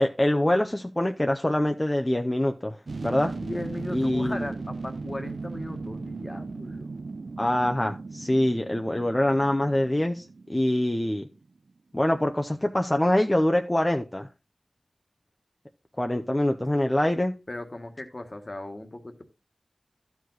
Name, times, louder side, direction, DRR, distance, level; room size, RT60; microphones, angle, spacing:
voice 1, 0.0-2.8 3.0-3.3 3.9-4.5 7.4-11.3 11.9-14.3 16.0-17.3, left 1 dB, 20° left, 4 dB, 0.7 m, -24 dB
sound 1, 2.9-11.4 11.7-11.8, right 3 dB, 80° right, 0.4 m, -37 dB
voice 2, 3.4-6.9 17.5-19.2, left 1 dB, 40° left, 6 dB, 1.4 m, -37 dB
13.0 x 4.8 x 3.9 m, 0.28 s
wide cardioid pair, 60°, 0 cm